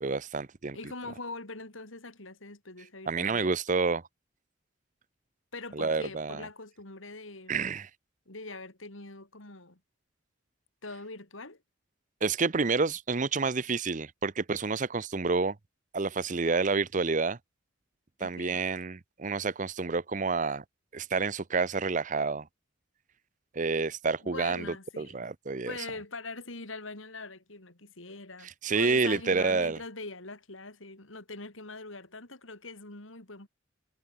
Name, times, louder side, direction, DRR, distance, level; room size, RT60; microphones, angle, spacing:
voice 1, 0.0-0.8 3.1-4.0 5.7-6.4 7.5-7.9 12.2-15.6 15.9-17.4 18.2-20.6 20.9-22.5 23.5-25.7 28.6-29.8, right 4 dB, 40° right, 0.7 m, -29 dB
voice 2, 0.7-3.5 5.5-7.7 8.3-9.8 10.8-11.6 18.2-18.7 24.2-25.3 25.6-33.5, left 3 dB, 80° left, 4.6 m, -43 dB
head